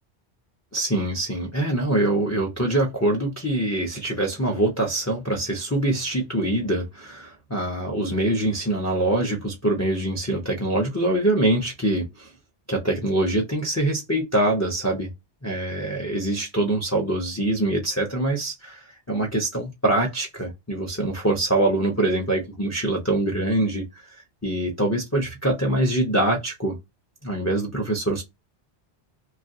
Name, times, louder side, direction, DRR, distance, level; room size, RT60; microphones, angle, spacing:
voice 1, 0.7-12.3 12.7-15.1 15.4-26.8 27.2-28.2, right 1 dB, 20° left, 0.4 m, -24 dB
2.9 x 2.3 x 2.6 m
omnidirectional pair, 1.1 m